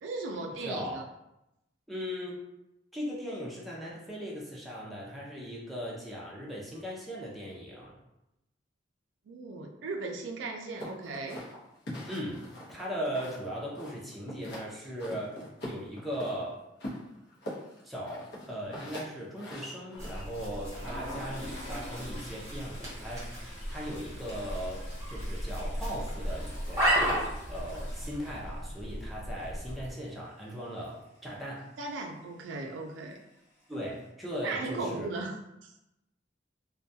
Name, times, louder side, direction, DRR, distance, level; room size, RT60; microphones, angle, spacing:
voice 1, 0.0-1.0 9.3-11.4 31.8-33.2 34.4-35.7, right 3 dB, 75° right, 2 dB, 0.4 m, -37 dB
voice 2, 0.6-1.0 1.9-2.4 2.9-8.0 12.1-15.3 15.7-16.6 17.8-27.1 27.5-31.6 33.7-35.1, equal, ahead, -5 dB, 0.5 m, -38 dB
sound 1, 10.8-13.5 13.8-14.7 15.0-16.4 16.8-20.6, equal, 60° left, 0.7 m, -42 dB
sound 2, 19.9-29.9, right 1 dB, 15° right, 0.8 m, -34 dB
Toilet flush, 20.6-31.2 31.4-31.7 32.0-32.2 33.1-33.6, equal, 80° left, 1.1 m, -47 dB
2.3 x 2.2 x 2.6 m, 0.89 s
head